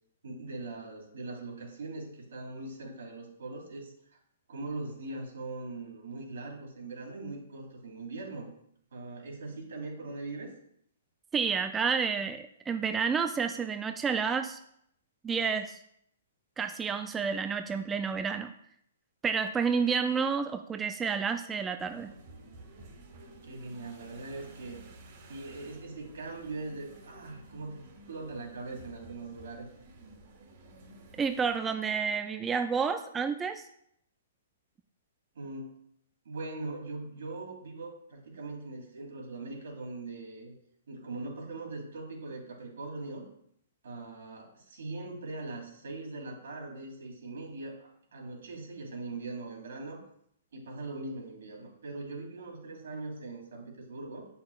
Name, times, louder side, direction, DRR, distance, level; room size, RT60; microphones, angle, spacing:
voice 1, 0.2-4.2 4.5-8.5 8.9-10.5 23.4-24.8 25.3-29.7 35.3-35.8 36.2-40.5 40.9-43.3 43.8-50.0 50.5-54.3, right 2 dB, 80° right, -1 dB, 2.7 m, -41 dB
voice 2, 11.3-14.6 15.2-15.8 16.6-18.5 19.2-22.1 31.2-33.6, right 6 dB, 15° right, 7 dB, 0.3 m, -30 dB
sound 1, 21.8-31.5, right 2 dB, 50° right, 1.9 m, -52 dB
7.7 x 5.7 x 2.4 m, 0.71 s
hypercardioid pair, 140°, 0 cm